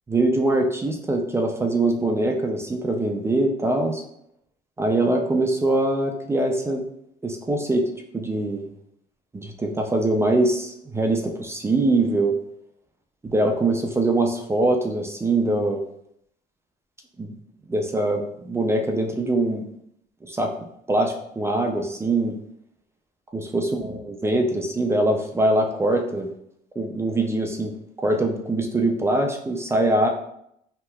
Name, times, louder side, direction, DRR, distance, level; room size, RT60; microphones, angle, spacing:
voice 1, 0.1-4.0 4.8-6.8 7.2-8.7 9.3-12.3 13.2-15.8 17.2-17.3 17.7-19.7 20.2-20.6 20.9-22.4 23.3-26.3 26.8-27.7 28.0-30.1, right 2 dB, 15° right, 3 dB, 0.3 m, -23 dB
3.1 x 2.7 x 2.2 m, 0.75 s
cardioid pair, 110°, 17 cm